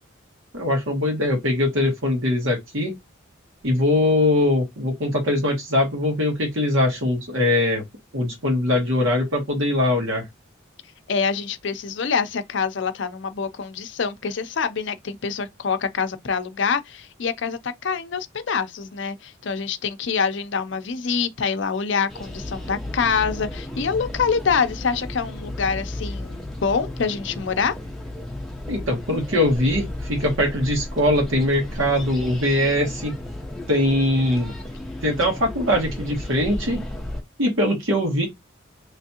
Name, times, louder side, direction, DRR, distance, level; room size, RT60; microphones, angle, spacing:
voice 1, 0.5-2.9 3.6-7.8 8.1-10.2 28.7-33.1 33.7-34.5 35.0-36.8 37.4-38.3, left 1 dB, 75° right, 1.7 m, -21 dB
voice 2, 11.1-27.7, left 5 dB, 60° left, 0.5 m, -25 dB
sound 1, 22.1-37.2, left 1 dB, ahead, 0.7 m, -34 dB
3.4 x 3.1 x 2.8 m
head